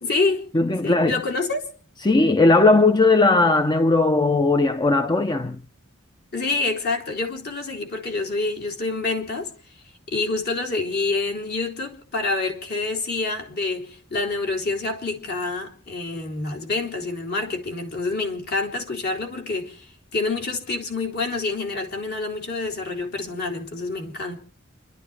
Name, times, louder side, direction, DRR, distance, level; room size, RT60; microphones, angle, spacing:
voice 1, 0.0-0.5 0.8-1.7 6.3-9.5 10.1-19.9 20.1-24.4, left 3 dB, 50° left, 3.4 m, -27 dB
voice 2, 0.5-1.2 2.0-5.6, left 3 dB, 20° left, 0.7 m, -18 dB
30.0 x 12.0 x 3.4 m
head